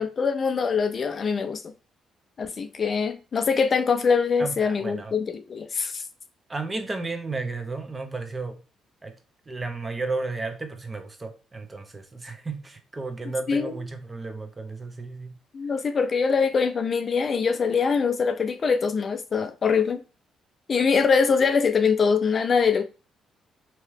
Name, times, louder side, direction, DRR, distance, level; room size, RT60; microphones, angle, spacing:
voice 1, 0.0-1.6 2.4-6.0 13.5-13.8 15.5-20.0 20.7-22.8, left 5 dB, 45° left, 0.3 m, -23 dB
voice 2, 4.4-5.2 6.5-8.6 9.0-9.2 9.5-15.4, right 3 dB, 25° right, 0.6 m, -33 dB
2.8 x 2.3 x 3.2 m
cardioid pair, 90°, 0 cm